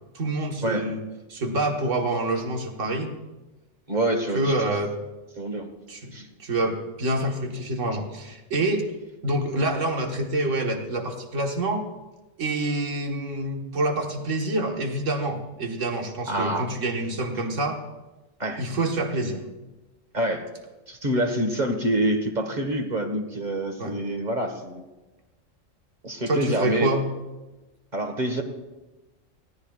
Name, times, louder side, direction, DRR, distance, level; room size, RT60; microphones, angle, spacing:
voice 1, 0.1-1.0 1.3-3.1 4.3-4.9 5.9-6.1 6.4-8.9 9.2-11.8 12.4-17.8 18.6-19.4 23.8-24.0 26.3-27.0, right 2 dB, 70° right, 2 dB, 1.9 m, -27 dB
voice 2, 3.9-4.5 5.4-5.7 6.1-6.3 16.3-16.7 18.4-18.6 20.1-20.5 20.9-24.8 26.0-26.9 27.9-28.4, right 1 dB, 35° right, 4 dB, 1.6 m, -26 dB
22.5 x 16.5 x 2.4 m, 1.1 s
omnidirectional pair, 1.3 m